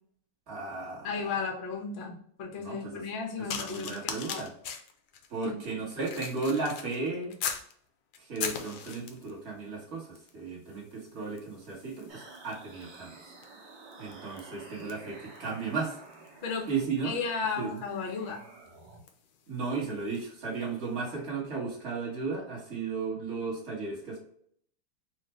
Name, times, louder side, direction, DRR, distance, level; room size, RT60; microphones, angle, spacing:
voice 1, 0.5-1.1 2.6-3.0 3.4-4.5 5.3-7.4 8.2-13.1 14.0-16.0 16.7-17.1 17.6-17.8 19.5-24.2, right 4 dB, 35° right, -3 dB, 1.4 m, -35 dB
voice 2, 1.0-4.4 5.4-5.6 16.4-16.7 17.0-18.4, left 5 dB, 55° left, 0 dB, 0.7 m, -34 dB
sound 1, 3.5-7.7 8.1-9.4 10.2-10.4 10.7-20.4 21.1-21.2, left 7 dB, 75° left, 1.1 m, -42 dB
sound 2, 12.1-19.0, right 3 dB, 60° right, 1.5 m, -50 dB
4.4 x 2.4 x 3.1 m, 0.64 s
omnidirectional pair, 2.3 m